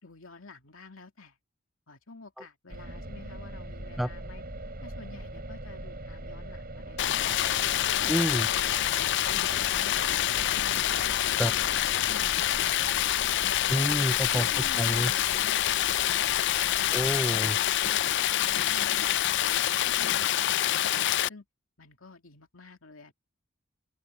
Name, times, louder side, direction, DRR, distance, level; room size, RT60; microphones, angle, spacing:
voice 1, 0.0-1.4 1.9-4.4 4.8-8.4 8.9-11.7 12.1-13.8 14.3-18.0 18.5-19.5 19.9-21.5 21.8-23.1, left 3 dB, 90° left, 2.6 m, -50 dB
sound 1, 2.7-20.2, right 1 dB, 50° right, 5.7 m, -43 dB
Stream, 7.0-21.3, left 12 dB, 60° left, 0.4 m, -26 dB
voice 2, 8.0-8.5 11.4-11.5 13.7-14.5 14.8-15.1 16.9-17.6, equal, ahead, 0.4 m, -28 dB
open air
head